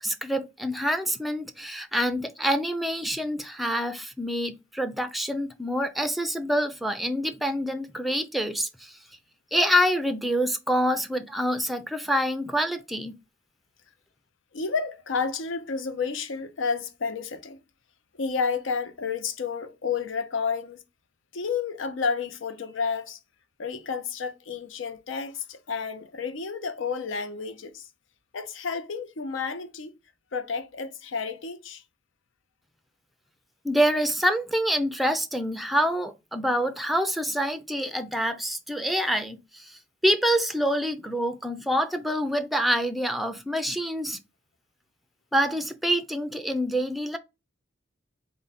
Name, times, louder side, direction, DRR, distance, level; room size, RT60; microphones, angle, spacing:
voice 1, 0.0-8.9 9.5-13.1 33.6-44.2 45.3-47.2, equal, ahead, 0.4 m, -26 dB
voice 2, 14.5-17.6 18.2-20.8 21.3-23.2 23.6-27.9 28.3-29.9 30.3-31.8, left 5 dB, 80° left, 0.6 m, -31 dB
3.8 x 2.2 x 4.0 m
head